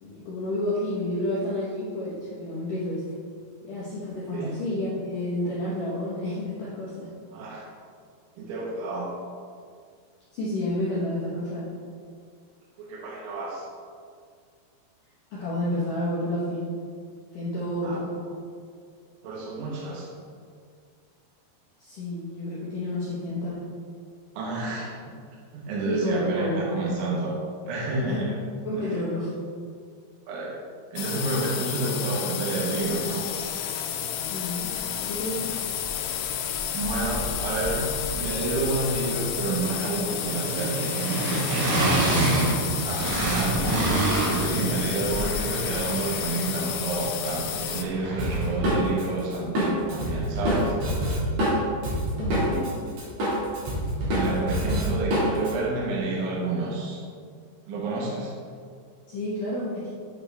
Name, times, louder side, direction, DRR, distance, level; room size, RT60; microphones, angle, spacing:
voice 1, 0.0-3.0 3.6-7.1 10.3-11.7 15.3-16.7 17.3-18.2 21.8-23.6 25.9-26.6 28.1-28.3 28.7-29.3 34.2-34.7 35.0-35.6 52.2-52.7 59.1-59.9, left 1 dB, 70° left, -8 dB, 2.0 m, -30 dB
voice 2, 7.3-7.7 8.4-9.1 12.8-13.7 17.8-18.0 19.2-20.1 24.4-25.1 25.5-27.4 27.6-28.4 28.9-29.0 30.3-30.6 30.9-33.3 33.9-34.1 36.7-37.8 38.1-42.3 42.9-50.7 54.1-57.0 57.7-58.3, right 2 dB, 90° right, -4 dB, 3.6 m, -30 dB
sound 1, 31.0-47.8, left 10 dB, 85° left, 2.9 m, -31 dB
sound 2, 34.7-34.8 35.1-36.2 36.5-48.7, right 2 dB, 65° right, 2.6 m, -29 dB
Drum kit, 48.2-52.7 53.0-55.5, equal, 50° right, 2.7 m, -26 dB
8.7 x 6.0 x 3.4 m, 2.1 s
omnidirectional pair, 5.3 m